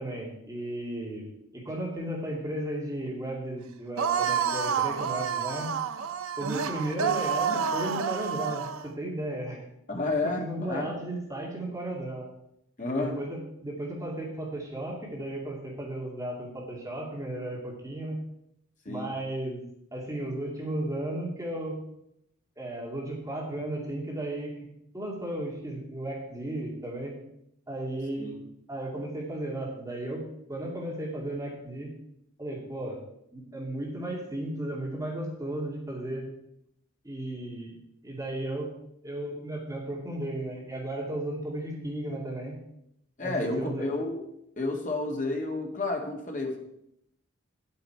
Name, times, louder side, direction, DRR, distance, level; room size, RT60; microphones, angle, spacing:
voice 1, 0.0-5.7 6.4-9.6 10.2-12.2 13.0-18.2 18.9-19.6 19.9-21.7 22.6-24.5 24.9-27.1 27.7-28.3 28.7-30.2 30.5-31.9 32.4-33.0 33.3-36.2 37.0-37.7 38.0-38.7 39.0-42.6 43.2-43.9, right 1 dB, 15° right, -3 dB, 2.3 m, -34 dB
sound 1, 4.0-8.9, right 7 dB, 85° right, 0.6 m, -29 dB
voice 2, 9.9-10.9 12.8-13.1 18.9-19.1 28.2-28.4 43.2-44.2 44.6-46.6, left 2 dB, 40° left, 1 dB, 1.8 m, -30 dB
9.6 x 8.8 x 4.5 m, 0.78 s
head